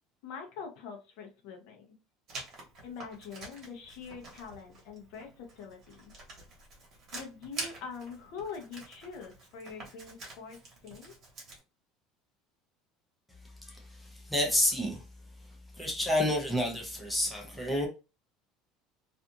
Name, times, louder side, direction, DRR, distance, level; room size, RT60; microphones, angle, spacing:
voice 1, 0.2-1.9 2.8-6.1 7.1-11.1, left 5 dB, 60° left, 0.7 m, -44 dB
Writing, 2.3-11.6, right 3 dB, 35° right, 1.1 m, -47 dB
voice 2, 13.6-15.0 15.7-17.9, left 1 dB, ahead, 0.5 m, -29 dB
2.5 x 2.4 x 2.7 m
cardioid pair, 180°, 0 cm